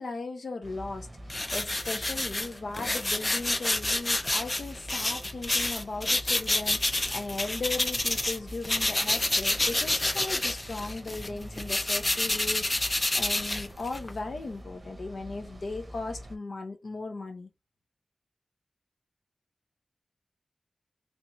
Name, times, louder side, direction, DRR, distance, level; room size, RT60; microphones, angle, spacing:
voice 1, 0.0-17.5, left 3 dB, 80° left, 0.6 m, -37 dB
sound 1, 0.6-16.4, equal, 45° right, 0.7 m, -46 dB
sound 2, 1.3-8.4 8.6-14.1, left 1 dB, 30° left, 0.4 m, -28 dB
3.3 x 3.0 x 2.6 m
wide cardioid pair, 90°, 0 cm